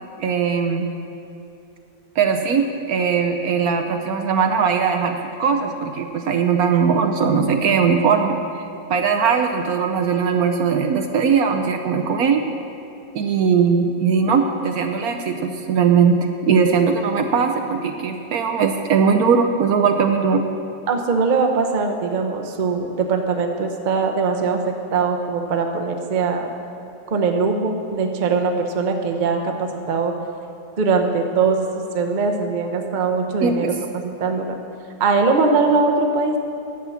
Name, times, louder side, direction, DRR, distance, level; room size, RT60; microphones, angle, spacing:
voice 1, 0.2-0.9 2.2-8.4 8.9-12.4 13.1-16.2 16.4-20.4 33.4-33.7, right 6 dB, 65° right, 5 dB, 1.1 m, -19 dB
voice 2, 20.9-26.5 27.1-30.1 30.8-33.7 34.2-34.6 35.0-36.4, right 4 dB, 40° right, 4 dB, 0.7 m, -21 dB
11.0 x 7.7 x 6.9 m, 2.6 s
omnidirectional pair, 1.8 m